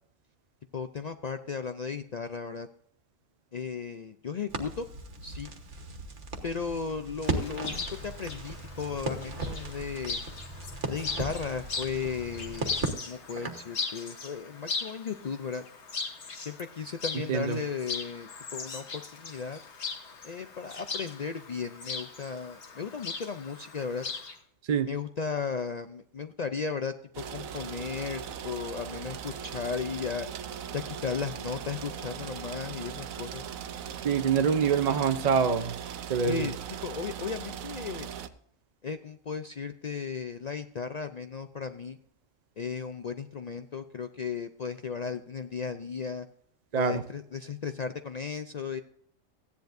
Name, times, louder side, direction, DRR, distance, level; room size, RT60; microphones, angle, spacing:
voice 1, 0.7-2.7 3.5-4.9 5.2-5.5 6.4-10.2 10.9-12.7 13.1-15.6 16.5-19.6 20.2-24.0 24.9-30.3 30.7-33.4 36.2-36.5 36.8-38.1 38.8-42.0 42.6-46.3 46.8-48.8, left 6 dB, 75° left, 9 dB, 0.3 m, -35 dB
Crackle, 4.5-13.7, right 3 dB, 60° right, 1.7 m, -37 dB
Chirp tweet, 7.2-24.4, left 4 dB, 55° left, 1.5 m, -39 dB
sound 1, 27.1-38.3, right 8 dB, 85° right, 1.2 m, -39 dB
voice 2, 34.0-35.7 36.1-36.5 46.7-47.0, right 6 dB, 45° right, 8 dB, 0.6 m, -25 dB
15.5 x 10.5 x 2.6 m, 0.68 s
omnidirectional pair, 1.4 m